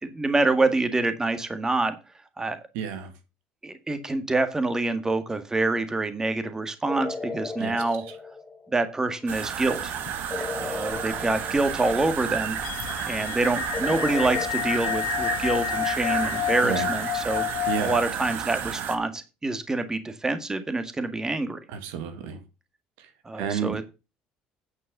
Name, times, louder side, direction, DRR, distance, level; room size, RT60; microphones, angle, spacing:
voice 1, 0.0-2.0 2.4-2.6 3.6-8.0 8.7-10.0 10.5-12.6 13.1-17.4 17.8-21.6 23.2-23.8, right 2 dB, 15° right, 9 dB, 1.7 m, -26 dB
voice 2, 2.7-3.1 7.6-7.8 16.6-16.9 17.7-18.0 21.7-22.4 23.4-23.8, right 7 dB, 85° right, 8 dB, 2.0 m, -30 dB
sound 1, 6.9-8.9 10.3-12.4 13.7-14.5, left 4 dB, 10° left, 1.7 m, -36 dB
sound 2, 9.3-19.0, right 8 dB, 65° right, 1.8 m, -32 dB
sound 3, 9.6-10.1 10.4-10.5 10.7-18.0, left 14 dB, 85° left, 0.7 m, -30 dB
9.6 x 5.4 x 6.6 m, 0.28 s
supercardioid pair, 90°, 3 cm